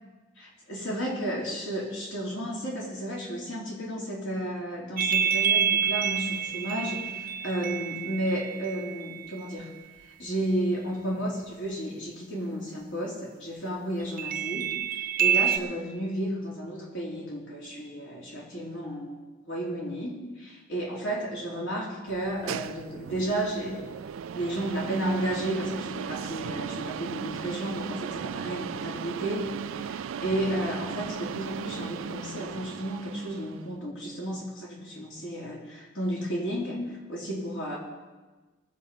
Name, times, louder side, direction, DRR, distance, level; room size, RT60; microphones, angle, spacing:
voice 1, 0.4-9.7 10.2-19.2 19.5-23.8 24.3-37.8, right 1 dB, 70° left, -4 dB, 3.5 m, -33 dB
sound 1, 5.0-9.5 14.2-15.6, right 8 dB, 45° right, 0.7 m, -27 dB
sound 2, 22.1-33.7, right 7 dB, 90° right, 0.4 m, -37 dB
19.5 x 7.6 x 5.3 m, 1.3 s
head